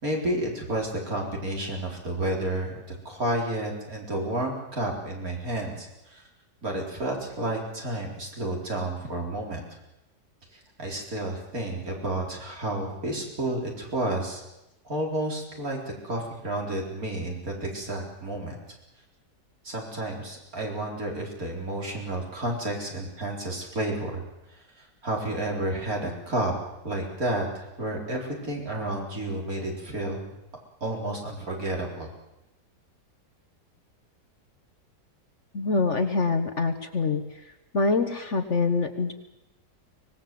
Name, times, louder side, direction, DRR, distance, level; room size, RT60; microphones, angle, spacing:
voice 1, 0.0-6.2 6.6-9.6 10.5-14.4 14.8-18.6 19.6-24.2 24.5-26.5 26.8-30.2 30.8-32.1, right 1 dB, 55° right, -1 dB, 4.7 m, -31 dB
voice 2, 35.5-37.2 37.7-39.1, left 3 dB, 45° left, 7 dB, 1.5 m, -25 dB
24.5 x 19.0 x 7.7 m, 0.93 s
omnidirectional pair, 1.8 m